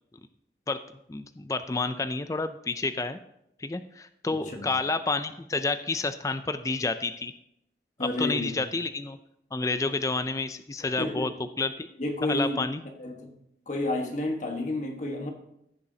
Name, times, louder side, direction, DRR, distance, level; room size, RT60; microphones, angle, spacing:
voice 1, 1.1-3.2 3.6-7.3 8.0-9.2 9.5-11.3 11.6-11.9 12.2-12.8, left 3 dB, 20° left, 10 dB, 0.4 m, -29 dB
voice 2, 4.3-4.7 8.0-8.5 10.8-11.3 12.0-12.7 13.0-13.4 13.7-15.3, left 1 dB, 45° left, 3 dB, 1.3 m, -31 dB
15.5 x 7.0 x 2.8 m, 0.77 s
head